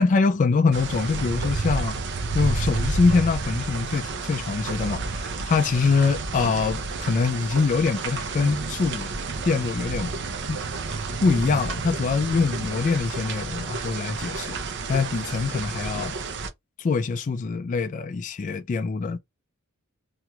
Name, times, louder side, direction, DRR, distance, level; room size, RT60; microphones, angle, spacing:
voice 1, 0.0-2.0 2.3-9.1 9.4-10.1 10.5-10.6 11.2-14.6 14.9-16.1 16.8-19.2, left 4 dB, 35° left, 0.3 m, -24 dB
sound 1, 0.7-16.5, right 3 dB, 55° right, 0.6 m, -30 dB
2.9 x 2.9 x 2.3 m
head